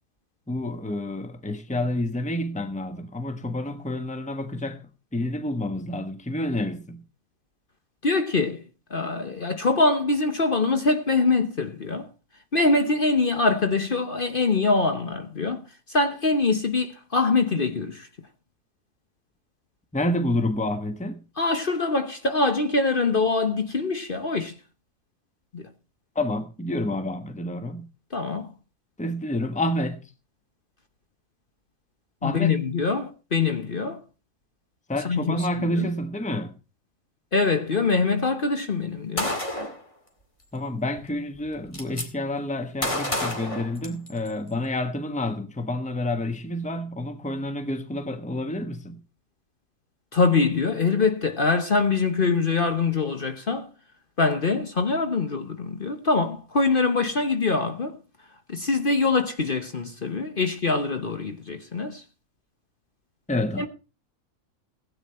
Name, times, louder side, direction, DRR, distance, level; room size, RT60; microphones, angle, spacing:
voice 1, 0.5-4.8 5.1-7.0 19.9-21.2 26.1-27.9 29.0-30.1 32.2-32.6 34.9-36.6 40.5-49.0 63.3-63.7, left 1 dB, 5° left, 1.1 m, -29 dB
voice 2, 8.0-8.6 8.9-12.1 12.5-15.6 15.9-18.1 21.4-24.5 25.5-25.6 28.1-28.5 32.2-34.0 35.0-35.4 35.7-35.9 37.3-39.4 50.1-53.7 54.2-58.0 58.5-62.0 63.6-63.7, left 3 dB, 45° left, 1.1 m, -24 dB
Gunshot gunfire, 39.2-39.8 41.0-41.1 41.3-42.1 42.8-44.3, left 1 dB, 25° left, 2.3 m, -29 dB
16.0 x 9.3 x 4.3 m
omnidirectional pair, 1.4 m